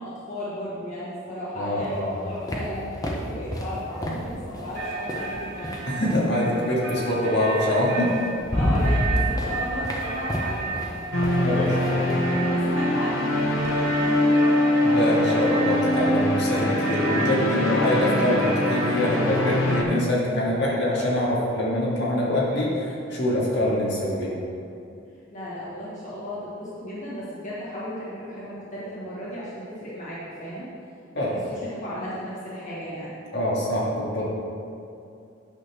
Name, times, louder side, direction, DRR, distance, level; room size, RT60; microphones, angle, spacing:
voice 1, 0.0-5.9 8.5-14.4 25.3-30.7 31.5-33.2, equal, 40° left, -9 dB, 1.5 m, -35 dB
voice 2, 1.6-2.2 4.0-4.1 5.9-8.1 11.4-11.9 14.8-24.3 31.2-31.4 33.3-34.3, left 1 dB, 60° left, -5 dB, 1.9 m, -24 dB
sound 1, 1.8-6.4 7.6-7.7 8.1-13.8, equal, 20° left, 0.8 m, -30 dB
sound 2, 3.8-4.5 4.7-19.8, right 4 dB, 50° right, 1.6 m, -34 dB
sound 3, 11.1-19.8, left 1 dB, 90° left, 1.1 m, -23 dB
9.1 x 4.2 x 6.2 m, 2.5 s
head